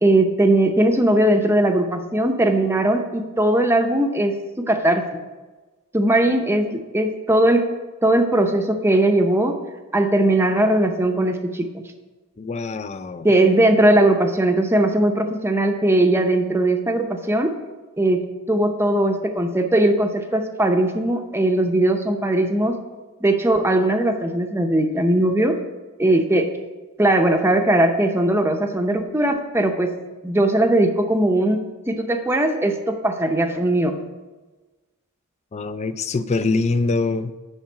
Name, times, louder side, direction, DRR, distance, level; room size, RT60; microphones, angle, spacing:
voice 1, 0.0-5.2 5.9-7.7 8.0-9.6 9.9-11.9 13.2-17.6 18.0-18.2 18.5-22.8 23.2-25.6 26.0-26.5 27.0-29.9 30.2-34.0, right 1 dB, 10° right, 5 dB, 0.7 m, -19 dB
voice 2, 12.4-13.3 35.5-37.3, left 3 dB, 30° left, 12 dB, 0.4 m, -24 dB
10.5 x 3.7 x 7.2 m, 1.2 s
head